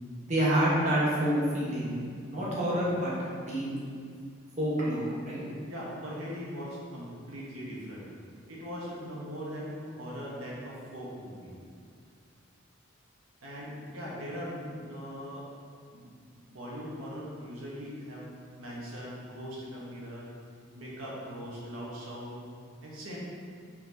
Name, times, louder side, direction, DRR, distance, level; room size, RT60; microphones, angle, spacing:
voice 1, 0.2-2.0 2.3-3.7 4.6-5.4, right 1 dB, 35° right, -8 dB, 1.4 m, -28 dB
voice 2, 5.7-8.0 8.5-11.5 13.4-15.4 15.9-16.1 16.5-18.3 18.6-20.3 20.7-22.4 22.8-23.2, equal, 90° right, -6 dB, 1.4 m, -40 dB
4.6 x 4.3 x 5.6 m, 2.2 s
head